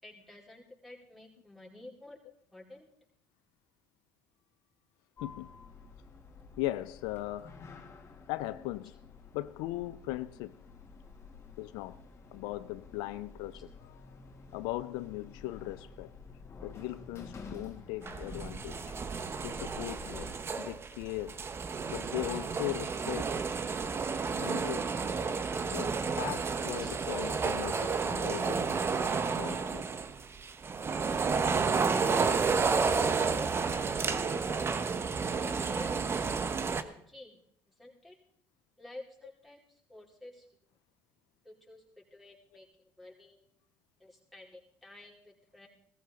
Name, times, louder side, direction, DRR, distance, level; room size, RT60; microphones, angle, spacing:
voice 1, 0.0-2.2 2.5-2.9 13.5-13.6 26.8-26.9 33.4-34.5 35.7-35.9 36.4-37.4 37.8-38.2 38.8-40.5 41.4-41.8 42.1-43.4 44.0-45.7, left 2 dB, ahead, 4.6 m, -51 dB
Sliding door, 5.2-20.4, left 4 dB, 40° left, 2.5 m, -50 dB
voice 2, 6.6-7.5 8.3-9.0 9.3-10.5 11.6-12.0 12.3-14.1 14.5-16.1 16.6-18.9 19.4-20.3 20.6-21.4 21.9-23.3 24.3-24.9 25.6-28.8 29.4-29.9, left 17 dB, 85° left, 0.4 m, -38 dB
sound 1, 18.0-36.8, right 5 dB, 35° right, 1.1 m, -31 dB
17.5 x 14.5 x 3.8 m
supercardioid pair, 80°, 7 cm